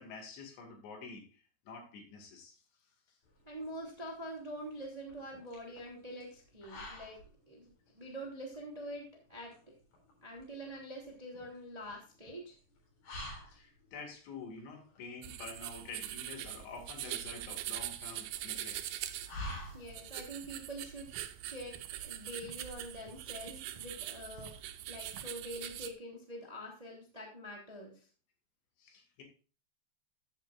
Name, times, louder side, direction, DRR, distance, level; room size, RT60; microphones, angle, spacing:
voice 1, 0.0-2.6 13.5-19.0 19.6-19.8 28.8-29.2, left 4 dB, 70° left, 2 dB, 4.5 m, -48 dB
sound 1, 3.2-20.3, left 1 dB, 55° left, 5.6 m, -50 dB
voice 2, 3.4-9.6 10.2-12.6 19.7-21.1 21.4-28.1, equal, 15° right, -1 dB, 1.7 m, -45 dB
sound 2, 15.2-25.9, right 13 dB, 85° right, 2.9 m, -43 dB
Walk footsteps, 20.4-20.6 21.1-21.3 21.7-21.9 22.4-22.6 23.0-23.3 23.7-23.9 24.3-24.6 25.1-25.3, right 5 dB, 50° right, 2.9 m, -53 dB
15.0 x 8.1 x 2.5 m, 0.36 s
omnidirectional pair, 5.4 m